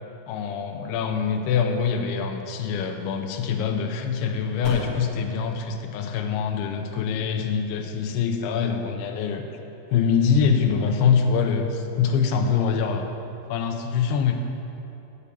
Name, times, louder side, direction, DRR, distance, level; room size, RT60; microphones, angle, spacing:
voice 1, 0.3-9.4 9.9-13.1 13.5-14.3, left 6 dB, 85° left, 4 dB, 2.4 m, -24 dB
sound 1, 4.6-9.3, equal, 20° left, 0.6 m, -42 dB
8.3 x 7.2 x 6.9 m, 2.9 s
omnidirectional pair, 5.2 m